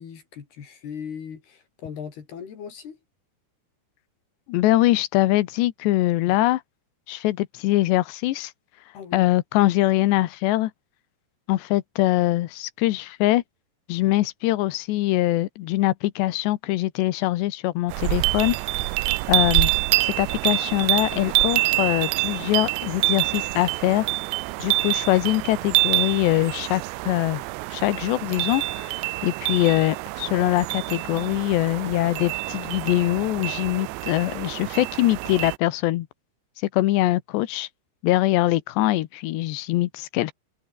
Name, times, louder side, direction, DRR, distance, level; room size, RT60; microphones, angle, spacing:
voice 1, 0.0-3.0 8.9-9.3, left 7 dB, 65° left, 5.2 m, -38 dB
voice 2, 4.5-6.6 7.1-8.5 9.1-10.7 11.5-13.4 13.9-18.9 19.3-19.7 20.0-24.1 24.6-27.4 27.7-29.0 29.2-36.1 36.7-37.7 38.0-40.3, left 16 dB, 80° left, 3.2 m, -23 dB
sound 1, 17.9-35.6, right 22 dB, 85° right, 2.8 m, -26 dB
omnidirectional pair, 4.9 m